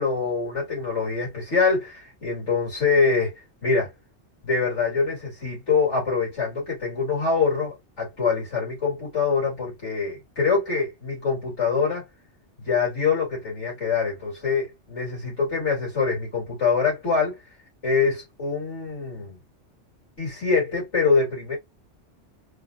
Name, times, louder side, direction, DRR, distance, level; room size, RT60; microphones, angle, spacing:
voice 1, 0.0-3.9 4.4-12.0 12.6-17.4 17.8-19.4 20.2-21.6, left 5 dB, 85° left, 3.3 m, -24 dB
4.8 x 2.5 x 2.6 m
omnidirectional pair, 1.2 m